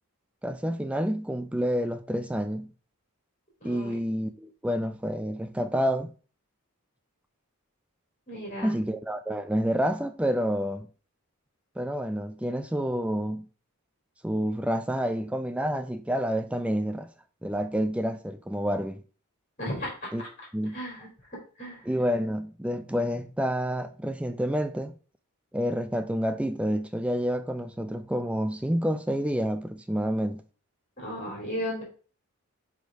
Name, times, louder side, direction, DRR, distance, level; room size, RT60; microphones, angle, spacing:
voice 1, 0.4-2.7 3.6-6.1 8.6-10.9 11.8-13.5 14.2-17.1 17.4-19.0 20.1-20.2 20.5-20.8 21.9-24.9 25.5-30.4, equal, 5° right, 0.4 m, -28 dB
voice 2, 3.6-4.0 8.3-8.8 19.6-20.1 20.7-21.9 31.0-31.8, equal, 30° left, 3.7 m, -35 dB
6.1 x 5.0 x 5.2 m
head